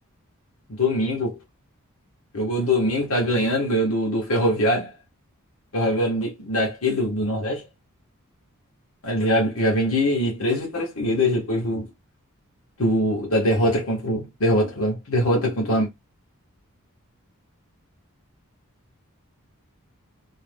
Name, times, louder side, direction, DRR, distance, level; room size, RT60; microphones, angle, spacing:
voice 1, 0.7-1.4 2.3-4.9 5.7-7.6 9.0-11.9 12.8-15.9, equal, 70° left, 0.9 m, -22 dB
2.5 x 2.0 x 3.1 m
head